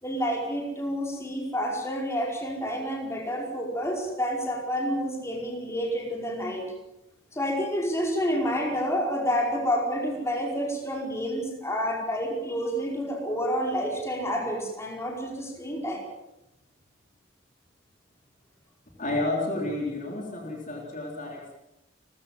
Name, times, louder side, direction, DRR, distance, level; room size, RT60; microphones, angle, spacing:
voice 1, 0.0-6.7 7.3-16.0, equal, 15° left, 0 dB, 4.8 m, -29 dB
voice 2, 19.0-21.5, left 2 dB, 40° left, 0 dB, 3.8 m, -31 dB
29.5 x 14.5 x 7.7 m, 0.91 s
head